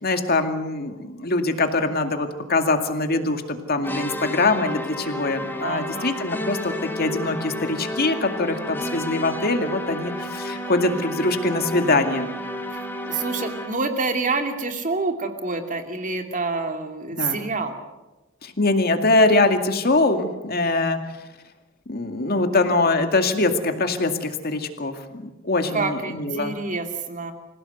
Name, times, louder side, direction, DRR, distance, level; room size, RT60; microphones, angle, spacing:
voice 1, 0.0-12.3 17.2-17.4 18.4-21.0 21.9-26.6, left 2 dB, 50° left, 6 dB, 2.2 m, -23 dB
sound 1, 3.8-13.9, left 1 dB, 10° left, 2.1 m, -32 dB
voice 2, 5.6-6.2 12.7-17.7 25.7-27.3, right 3 dB, 40° right, 5 dB, 2.6 m, -27 dB
26.5 x 17.0 x 8.0 m, 1.1 s
head